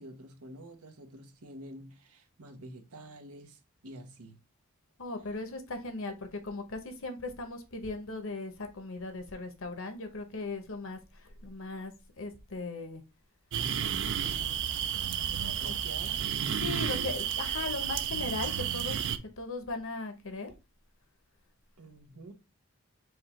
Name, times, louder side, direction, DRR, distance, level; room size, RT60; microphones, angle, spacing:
voice 1, 0.0-4.4 15.3-16.8 21.8-22.3, right 1 dB, 90° right, 1.1 m, -48 dB
voice 2, 5.0-11.9 12.2-13.0 13.9-15.0 15.6-15.7 16.6-19.1 19.4-20.5, left 3 dB, 65° left, 1.0 m, -38 dB
sound 1, 13.5-19.2, right 8 dB, 55° right, 0.4 m, -32 dB
4.9 x 2.4 x 4.3 m
head